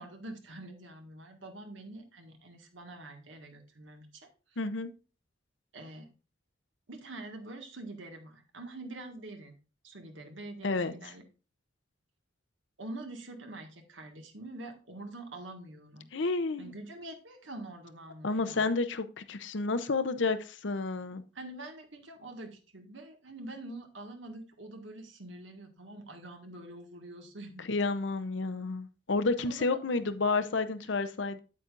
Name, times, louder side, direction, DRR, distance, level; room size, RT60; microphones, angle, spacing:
voice 1, 0.0-4.3 5.7-6.1 6.9-9.6 9.8-11.2 12.8-16.1 16.6-18.7 21.3-27.7 29.4-30.1, right 2 dB, 75° right, 1.8 m, -45 dB
voice 2, 4.6-4.9 10.6-10.9 16.1-16.7 18.2-21.2 27.7-31.4, left 3 dB, 65° left, 0.7 m, -30 dB
8.7 x 8.3 x 2.5 m
head